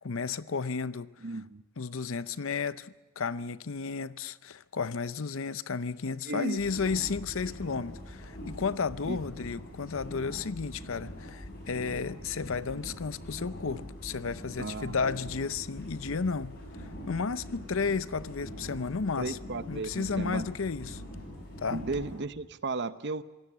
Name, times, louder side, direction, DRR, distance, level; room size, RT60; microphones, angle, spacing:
voice 1, 0.0-1.1 1.8-19.4 19.7-21.0 21.6-21.8, left 5 dB, 60° left, 0.6 m, -33 dB
voice 2, 1.2-1.6 6.3-6.6 9.1-9.2 14.6-15.0 19.2-20.5 21.7-23.2, right 3 dB, 50° right, 0.8 m, -34 dB
sound 1, 6.6-22.2, equal, 45° left, 7.6 m, -43 dB
26.0 x 17.0 x 7.3 m
head